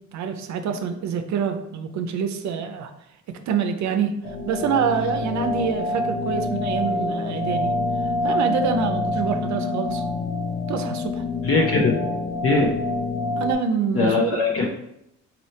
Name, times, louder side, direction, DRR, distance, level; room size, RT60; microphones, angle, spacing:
voice 1, 0.1-2.9 3.3-4.1 4.5-7.7 8.2-10.0 10.7-11.2 13.4-14.4, right 6 dB, 70° right, 7 dB, 0.5 m, -26 dB
sound 1, 4.2-13.5, left 2 dB, 90° left, 0.8 m, -26 dB
voice 2, 11.4-12.0 12.4-12.7 13.9-14.7, left 3 dB, 50° left, -2 dB, 0.7 m, -20 dB
4.2 x 2.8 x 3.1 m, 0.81 s
cardioid pair, 90°, 30 cm